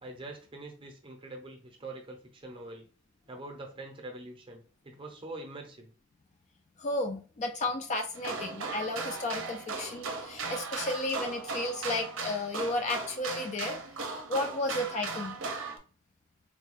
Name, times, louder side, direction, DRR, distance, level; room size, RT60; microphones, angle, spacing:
voice 1, 0.0-2.9 3.3-5.9, right 2 dB, 25° right, 2 dB, 0.6 m, -44 dB
voice 2, 6.8-15.4, left 2 dB, 35° left, 4 dB, 0.3 m, -33 dB
sound 1, 8.1-15.8, right 4 dB, 60° right, 0.6 m, -37 dB
3.9 x 2.2 x 3.2 m, 0.38 s
head